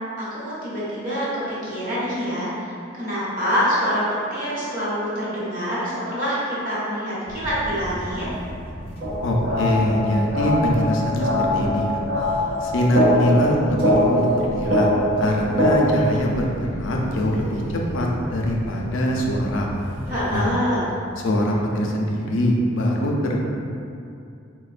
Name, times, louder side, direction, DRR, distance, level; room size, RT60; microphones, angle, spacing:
voice 1, 0.2-4.0 4.3-8.3 20.1-20.8, equal, 40° right, -10 dB, 1.0 m, -26 dB
crowded train, 7.3-20.6, equal, 30° left, 0.6 m, -35 dB
sound 1, 9.0-16.0, equal, 60° right, 0.5 m, -22 dB
voice 2, 9.2-12.0 12.6-14.9 15.2-19.7 20.3-20.5 21.2-23.4, equal, 70° left, -1 dB, 0.4 m, -23 dB
4.1 x 2.1 x 2.4 m, 2.5 s
head